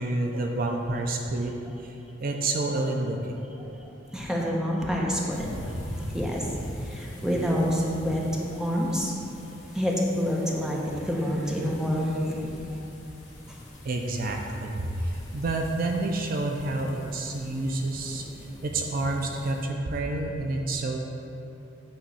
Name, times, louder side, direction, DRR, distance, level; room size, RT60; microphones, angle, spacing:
voice 1, 0.0-1.5 1.8-1.9 2.2-3.4 13.8-21.0, right 2 dB, 50° right, 2 dB, 0.5 m, -29 dB
voice 2, 4.1-6.5 6.8-8.2 8.5-9.1 9.7-12.8 13.5-13.6, equal, 5° right, -3 dB, 0.8 m, -28 dB
sound 1, 5.3-19.7, equal, 40° left, 1.5 m, -42 dB
8.8 x 3.1 x 5.5 m, 2.9 s
head